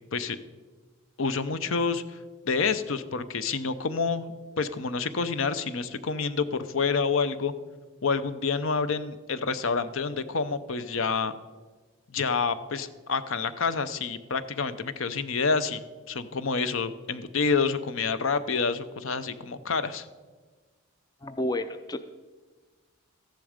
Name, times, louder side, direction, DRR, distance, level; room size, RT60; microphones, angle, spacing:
voice 1, 1.2-2.2 2.4-7.5 8.0-11.3 12.1-15.8 16.1-20.1, left 5 dB, 65° left, 12 dB, 0.7 m, -28 dB
voice 2, 21.2-22.0, left 1 dB, 15° left, 10 dB, 0.4 m, -30 dB
14.0 x 10.5 x 5.1 m, 1.4 s
head